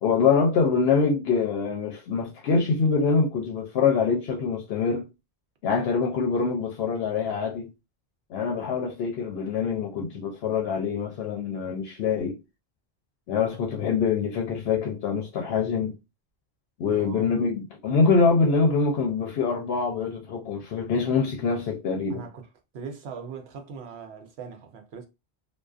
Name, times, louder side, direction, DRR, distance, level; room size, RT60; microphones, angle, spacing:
voice 1, 0.0-5.1 5.6-7.7 8.3-12.4 13.3-16.0 16.8-22.2, left 5 dB, 70° left, 0.8 m, -24 dB
voice 2, 16.9-17.3 22.1-25.1, right 6 dB, 75° right, 0.9 m, -40 dB
2.4 x 2.3 x 2.3 m
omnidirectional pair, 1.1 m